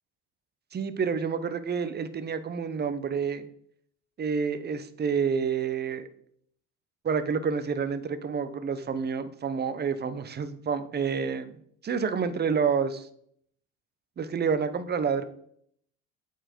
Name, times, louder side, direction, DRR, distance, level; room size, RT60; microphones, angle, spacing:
voice 1, 0.7-3.4 4.2-6.1 7.0-11.6 11.8-13.1 14.2-15.2, right 6 dB, 25° right, 12 dB, 0.8 m, -28 dB
8.7 x 4.6 x 4.5 m, 0.66 s
supercardioid pair, 100°, 37 cm